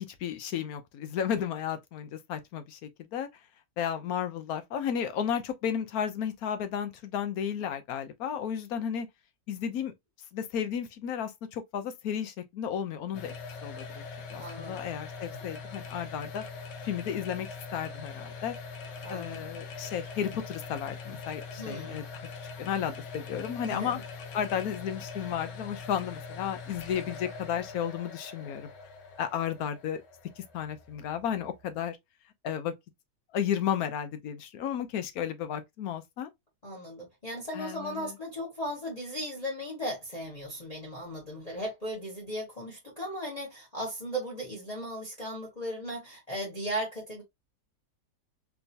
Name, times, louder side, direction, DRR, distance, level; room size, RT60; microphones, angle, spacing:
voice 1, 0.0-3.3 3.8-9.1 9.5-9.9 10.3-13.3 13.6-14.0 14.3-16.4 16.8-18.5 19.1-22.2 22.6-24.0 24.3-28.7 29.2-30.0 30.4-32.0 32.4-32.7 33.3-36.3 37.5-38.1, left 8 dB, 65° left, 1.1 m, -33 dB
sound 1, 13.1-31.9, left 4 dB, 85° left, 1.5 m, -43 dB
voice 2, 14.4-14.9 19.0-19.4 21.6-22.0 23.7-24.0 36.6-47.2, equal, 25° left, 1.3 m, -37 dB
3.5 x 3.0 x 2.7 m
omnidirectional pair, 1.8 m